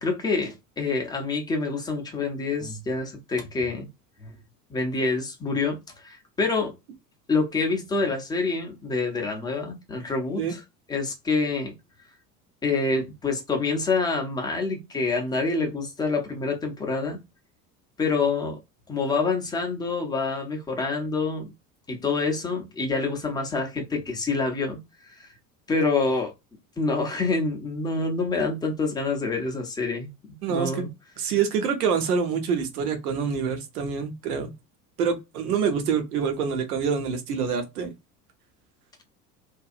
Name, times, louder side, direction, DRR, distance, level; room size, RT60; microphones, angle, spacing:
voice 1, 0.0-3.9 4.2-4.3 4.7-6.7 7.3-10.6 10.9-11.7 12.6-17.2 18.0-18.6 18.9-21.5 21.9-24.8 25.1-25.3 25.7-26.3 26.8-30.9, left 3 dB, 10° left, 0.5 m, -27 dB
voice 2, 30.4-30.8 31.2-34.5 35.0-37.9, right 6 dB, 60° right, 0.9 m, -26 dB
2.6 x 2.3 x 2.4 m
figure-of-eight pair, 75°, 49 cm